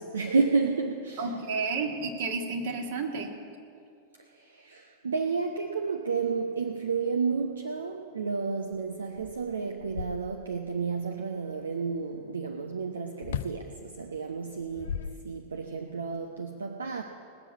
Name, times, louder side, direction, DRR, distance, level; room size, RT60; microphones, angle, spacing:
voice 1, 0.0-1.3 4.3-17.0, right 4 dB, 70° right, 4 dB, 0.7 m, -31 dB
voice 2, 1.2-3.3, right 4 dB, 50° right, 3 dB, 1.8 m, -31 dB
sound 1, 8.7-8.8 9.1-10.7 13.2-13.7 14.5-15.7, left 8 dB, 60° left, 0.4 m, -37 dB
19.5 x 7.2 x 8.4 m, 2.5 s
figure-of-eight pair, 90°, 0 cm